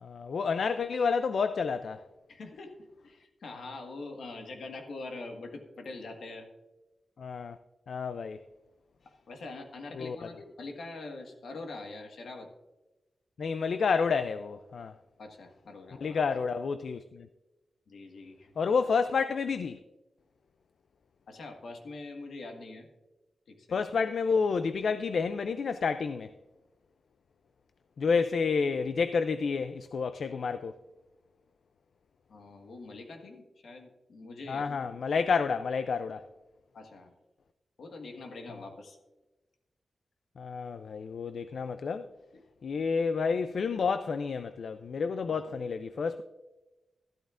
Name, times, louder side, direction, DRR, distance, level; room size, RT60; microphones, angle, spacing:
voice 1, 0.0-2.0 7.2-7.6 7.9-8.4 10.0-10.2 13.4-14.9 16.0-17.3 18.6-19.8 23.7-26.3 28.0-30.8 34.5-36.2 40.4-42.1 42.6-46.2, left 5 dB, 65° left, 0.4 m, -29 dB
voice 2, 2.3-2.7 3.0-6.5 9.3-12.5 15.2-16.3 17.9-18.5 21.3-22.9 23.5-23.8 32.3-35.0 36.7-37.1 37.8-39.0 42.3-42.4 45.3-45.5, left 3 dB, 80° left, 1.5 m, -44 dB
13.0 x 12.5 x 2.5 m
wide cardioid pair, 155°, 0 cm